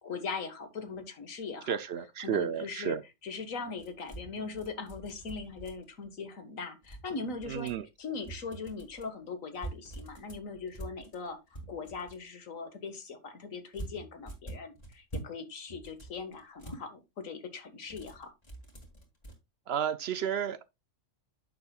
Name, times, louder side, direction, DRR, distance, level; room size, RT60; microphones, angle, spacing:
voice 1, 0.0-1.8 2.2-3.0 3.2-7.7 8.0-11.4 11.7-18.3, left 4 dB, 85° left, 1.9 m, -40 dB
voice 2, 1.7-3.0 7.5-7.9 19.7-20.7, right 8 dB, 60° right, 0.7 m, -32 dB
sound 1, 3.8-6.1 6.8-7.8 8.2-9.1 9.5-12.2 13.7-15.4 15.7-16.8 17.8-19.3, right 2 dB, 30° left, 2.7 m, -45 dB
10.5 x 7.0 x 2.3 m
omnidirectional pair, 1.3 m